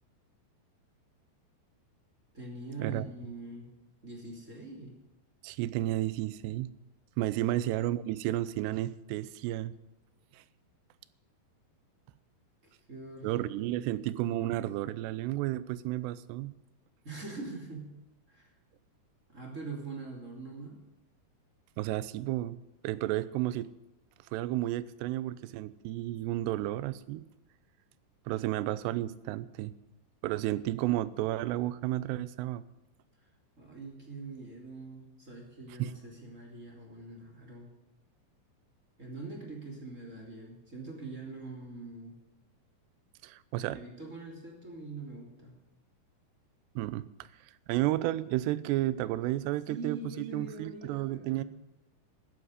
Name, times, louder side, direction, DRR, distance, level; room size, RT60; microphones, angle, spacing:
voice 1, 2.3-3.7 4.0-4.9 7.5-7.6 12.6-14.4 17.0-17.9 18.3-18.5 19.3-20.8 33.6-37.7 39.0-42.2 43.6-45.5 49.7-51.4, right 3 dB, 20° right, 0 dB, 2.6 m, -43 dB
voice 2, 5.4-6.7 7.2-9.7 10.3-10.4 13.2-16.5 21.8-22.6 22.8-23.7 24.3-27.2 28.3-29.7 30.2-32.6 35.8-35.9 43.2-43.8 46.8-47.1 47.7-51.4, right 15 dB, 85° right, 16 dB, 2.8 m, -32 dB
14.0 x 9.3 x 10.0 m, 0.96 s
omnidirectional pair, 4.9 m